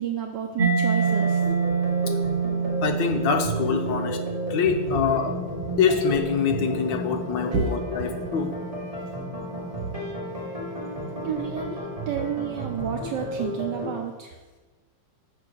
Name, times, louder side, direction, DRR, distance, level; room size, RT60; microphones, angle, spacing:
voice 1, 0.0-1.4 4.9-5.0 7.5-7.7 11.2-14.4, right 8 dB, 70° right, 3 dB, 1.1 m, -30 dB
Mallet percussion, 0.6-8.1, right 6 dB, 40° right, 0.6 m, -28 dB
sound 1, 1.0-14.0, equal, 15° right, 1.9 m, -33 dB
voice 2, 2.8-4.2 4.5-5.3 5.8-8.5, left 6 dB, 65° left, 4 dB, 1.4 m, -24 dB
6.9 x 4.9 x 6.8 m, 1.3 s
omnidirectional pair, 2.4 m